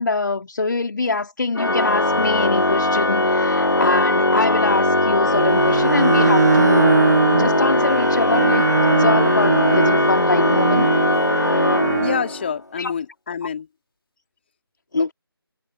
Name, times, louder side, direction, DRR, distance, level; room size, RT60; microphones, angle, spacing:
voice 1, 0.0-7.0 7.3-10.9 12.8-12.9 14.9-15.1, left 3 dB, 50° left, 3.7 m, -24 dB
Organ, 1.5-12.5, left 2 dB, 65° left, 4.9 m, -20 dB
Bowed string instrument, 5.2-12.3, right 4 dB, 40° right, 0.9 m, -20 dB
voice 2, 12.0-13.7 15.0-15.1, left 7 dB, 25° left, 3.1 m, -27 dB
figure-of-eight pair, 160°, 13 cm